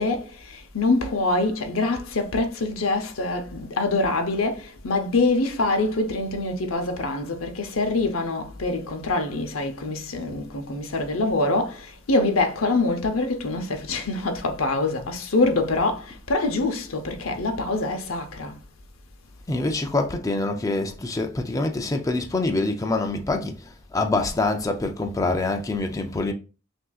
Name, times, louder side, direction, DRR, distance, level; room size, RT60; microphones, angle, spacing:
voice 1, 0.0-18.6, left 2 dB, 90° left, 0.8 m, -25 dB
voice 2, 19.5-26.3, left 2 dB, 15° left, 0.4 m, -25 dB
6.0 x 2.7 x 2.4 m
head